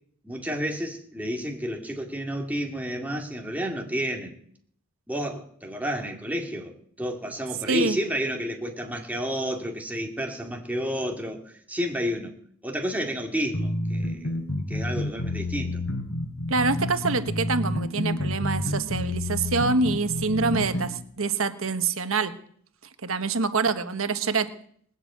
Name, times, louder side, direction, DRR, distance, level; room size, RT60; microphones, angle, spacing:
voice 1, 0.2-4.3 5.1-12.3 12.6-14.3 14.7-15.8, equal, 10° right, 1 dB, 2.5 m, -31 dB
voice 2, 7.7-8.0 16.5-22.3 23.0-24.5, right 4 dB, 70° right, 10 dB, 1.3 m, -25 dB
sound 1, 13.5-20.9, left 1 dB, 75° left, 3.8 m, -29 dB
20.0 x 8.0 x 8.7 m, 0.62 s
head